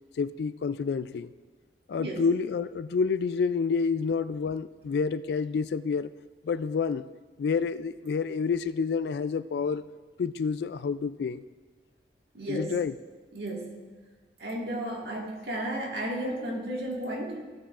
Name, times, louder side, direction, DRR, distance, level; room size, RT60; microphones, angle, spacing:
voice 1, 0.2-1.3 1.9-6.1 6.4-7.1 7.4-9.8 10.2-11.4 12.5-12.9, left 5 dB, 70° left, 14 dB, 0.3 m, -28 dB
voice 2, 12.3-12.8 13.3-13.8 14.4-17.5, right 1 dB, 70° right, -1 dB, 1.8 m, -33 dB
15.5 x 8.5 x 2.5 m, 1.4 s
head